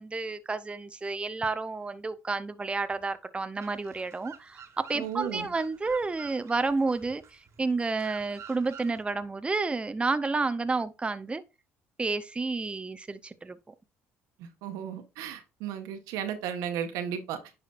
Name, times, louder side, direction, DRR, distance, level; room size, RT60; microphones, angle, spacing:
voice 1, 0.0-11.4 12.0-13.6, right 3 dB, 20° right, 0.7 m, -30 dB
sound 1, 3.6-9.0, right 8 dB, 55° right, 1.5 m, -50 dB
voice 2, 5.0-5.5 14.4-17.4, right 9 dB, 80° right, 1.4 m, -34 dB
10.0 x 5.1 x 2.5 m
supercardioid pair, 80°, 6 cm